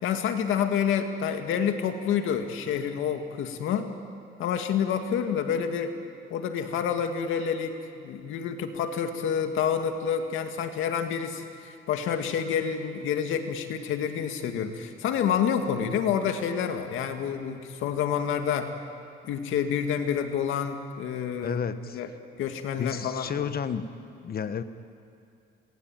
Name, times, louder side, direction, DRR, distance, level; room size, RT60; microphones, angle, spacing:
voice 1, 0.0-3.9 4.4-5.9 6.3-18.7 19.2-21.6 21.9-22.1 22.4-23.4, left 8 dB, 85° left, 6 dB, 2.2 m, -28 dB
voice 2, 21.4-22.0 22.8-23.9 24.2-24.6, left 7 dB, 50° left, 11 dB, 1.4 m, -31 dB
27.0 x 20.5 x 9.2 m, 2.5 s
cardioid pair, 90°, 20 cm